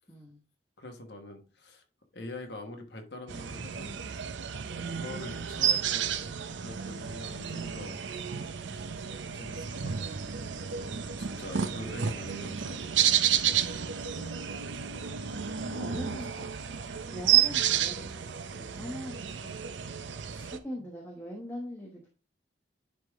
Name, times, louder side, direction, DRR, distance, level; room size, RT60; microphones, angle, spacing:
voice 1, 0.1-0.4 9.9-10.5 15.8-16.3 17.1-18.2 18.6-19.8 20.5-22.1, equal, 15° left, 1.1 m, -42 dB
voice 2, 0.8-1.8 2.1-3.9 4.9-8.0 9.3-10.2 10.7-12.8 14.1-14.4 15.6-16.7 20.3-20.5, left 2 dB, 65° left, 1.3 m, -44 dB
sound 1, 3.3-20.6, right 9 dB, 80° right, 0.6 m, -31 dB
10.0 x 3.6 x 3.5 m
head